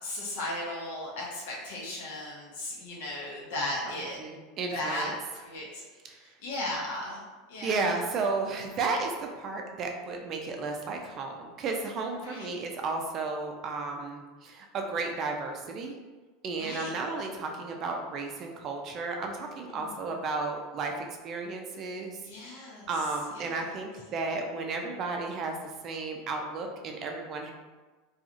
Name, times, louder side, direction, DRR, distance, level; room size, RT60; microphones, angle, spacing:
voice 1, 0.0-4.2 4.7-5.9 6.2-7.2 7.5-7.9 12.2-12.6 16.5-16.9 19.7-19.9 22.2-22.9 23.3-23.7, left 1 dB, 80° left, -4 dB, 0.7 m, -36 dB
voice 2, 4.2-5.1 6.0-6.2 7.6-16.0 16.4-22.2 22.5-25.5 25.8-27.5, right 3 dB, 35° right, 2 dB, 0.4 m, -33 dB
2.8 x 2.3 x 2.5 m, 1.3 s
supercardioid pair, 140°, 0 cm